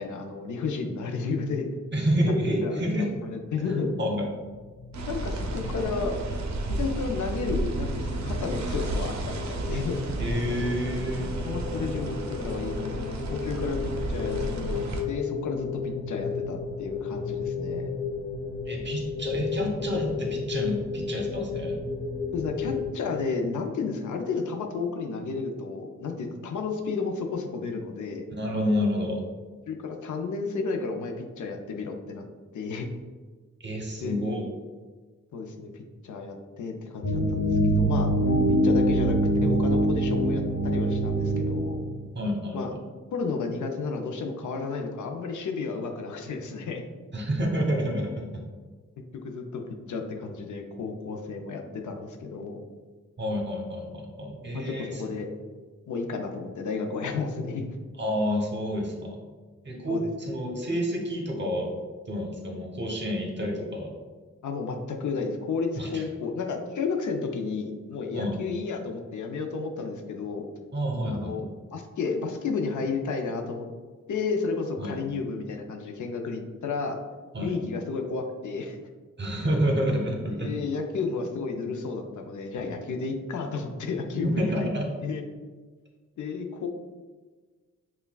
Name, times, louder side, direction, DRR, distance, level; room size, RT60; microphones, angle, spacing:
voice 1, 0.0-1.7 2.6-3.9 5.0-6.2 6.7-10.0 11.4-17.9 22.3-28.3 29.7-32.2 32.5-32.9 34.0-34.1 35.3-38.1 38.5-41.8 42.5-42.7 43.1-46.8 49.1-49.6 49.9-52.6 54.5-55.3 55.9-57.8 59.9-60.1 64.4-70.5 71.1-73.7 74.1-77.0 77.4-78.8 80.3-84.7 85.0-85.2 86.2-86.7, left 4 dB, 85° left, 3 dB, 0.5 m, -32 dB
voice 2, 1.9-3.1 3.7-4.3 10.2-11.3 18.7-21.7 28.4-29.2 33.6-34.4 42.1-42.8 47.1-48.4 53.2-55.0 58.0-59.2 59.6-61.7 62.1-63.9 65.8-66.0 68.1-68.4 70.7-71.4 74.8-75.0 77.3-77.5 79.2-80.5 84.4-84.9, equal, 40° right, 0 dB, 0.9 m, -29 dB
sound 1, 4.3-22.9, left 5 dB, 25° left, 0.5 m, -35 dB
sound 2, 4.9-15.0, right 2 dB, 70° right, 0.5 m, -32 dB
sound 3, 37.0-42.0, right 1 dB, 55° left, 1.1 m, -23 dB
5.4 x 2.3 x 2.2 m, 1.4 s
cardioid pair, 70°, 29 cm